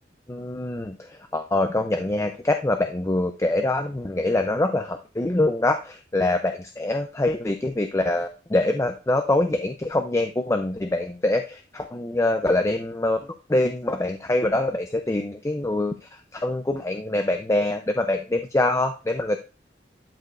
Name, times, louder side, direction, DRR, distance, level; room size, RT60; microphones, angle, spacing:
voice 1, 0.3-19.4, left 2 dB, 15° left, 6 dB, 0.4 m, -24 dB
11.5 x 5.3 x 2.4 m, 0.33 s
head